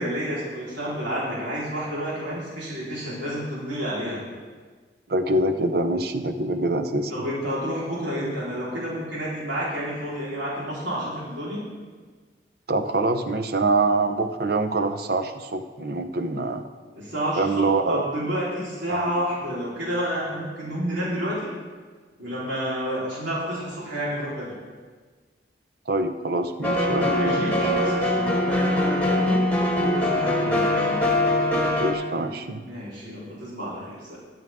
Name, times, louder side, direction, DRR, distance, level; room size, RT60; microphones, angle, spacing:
voice 1, 0.0-4.2 7.1-11.7 17.0-21.5 22.2-24.5 27.0-29.4 29.7-31.0 32.6-34.2, equal, 80° right, -8 dB, 4.1 m, -30 dB
voice 2, 5.1-7.3 12.7-16.7 17.4-18.1 18.9-19.1 25.9-27.7 31.8-32.6, right 2 dB, 55° right, 8 dB, 0.8 m, -25 dB
sound 1, 26.6-31.9, left 1 dB, 10° left, 1.5 m, -22 dB
21.5 x 7.8 x 3.6 m, 1.4 s
head